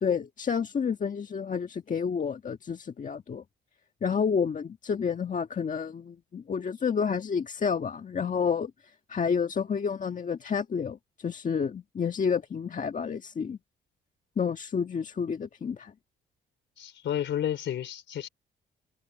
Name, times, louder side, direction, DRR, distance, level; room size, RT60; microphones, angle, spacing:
voice 1, 0.0-3.4 4.0-8.7 9.1-13.6 14.4-15.9, left 6 dB, 40° left, 1.5 m, -30 dB
voice 2, 16.8-18.3, left 10 dB, 70° left, 4.3 m, -31 dB
cardioid pair, 90°, 20 cm